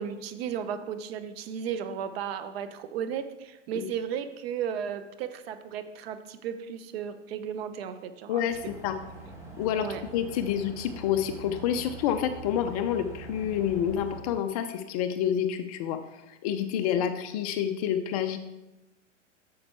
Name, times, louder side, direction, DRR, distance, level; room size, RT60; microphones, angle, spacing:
voice 1, 0.0-8.7 9.8-10.0 16.7-17.0, right 8 dB, 50° right, 10 dB, 0.9 m, -35 dB
voice 2, 8.3-9.0 9.6-9.9 10.1-16.0 16.3-18.4, left 9 dB, 30° left, 8 dB, 0.4 m, -28 dB
sound 1, 8.5-14.2, right 3 dB, 5° right, 1.7 m, -44 dB
8.7 x 6.9 x 4.5 m, 0.99 s
hypercardioid pair, 140°, 38 cm